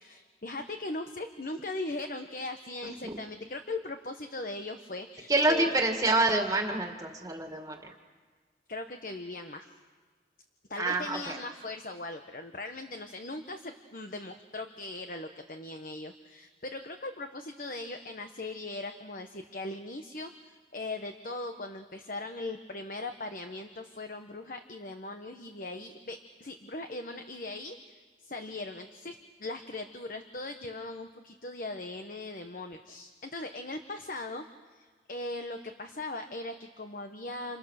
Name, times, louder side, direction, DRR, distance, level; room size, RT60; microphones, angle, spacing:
voice 1, 0.0-5.8 8.7-9.7 10.7-37.6, left 2 dB, 50° left, 6 dB, 1.2 m, -39 dB
voice 2, 2.8-3.1 5.3-7.8 10.8-11.4, right 2 dB, 20° right, 3 dB, 2.1 m, -27 dB
29.5 x 28.5 x 6.6 m, 1.5 s
head